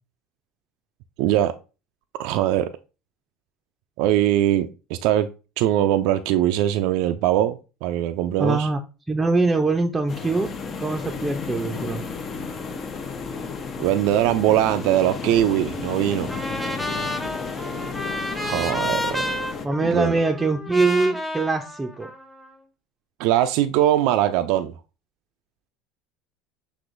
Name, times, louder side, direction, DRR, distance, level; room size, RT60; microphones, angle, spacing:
voice 1, 1.2-1.6 2.2-2.7 4.0-5.3 5.6-8.7 13.8-16.3 18.4-19.2 19.8-20.2 23.2-24.7, right 12 dB, 65° right, 0.3 m, -21 dB
voice 2, 8.4-8.8 9.1-10.5 10.8-12.0 19.6-22.1, right 3 dB, 15° right, 0.5 m, -23 dB
sound 1, 10.1-19.7, left 5 dB, 40° left, 0.6 m, -32 dB
Trumpet, 16.3-22.5, equal, 5° left, 0.9 m, -31 dB
6.0 x 2.9 x 2.5 m
hypercardioid pair, 85°, 0 cm